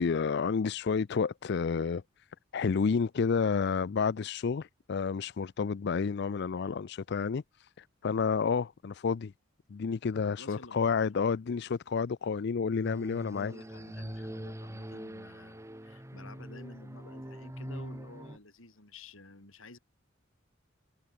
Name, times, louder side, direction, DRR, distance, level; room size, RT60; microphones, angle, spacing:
voice 1, 0.0-2.0 2.5-7.4 8.0-9.3 9.7-13.5, left 5 dB, 55° left, 0.4 m, -30 dB
voice 2, 10.4-11.4 13.3-19.8, left 2 dB, 75° left, 3.8 m, -52 dB
sound 1, 12.8-18.4, equal, 15° right, 1.8 m, -43 dB
head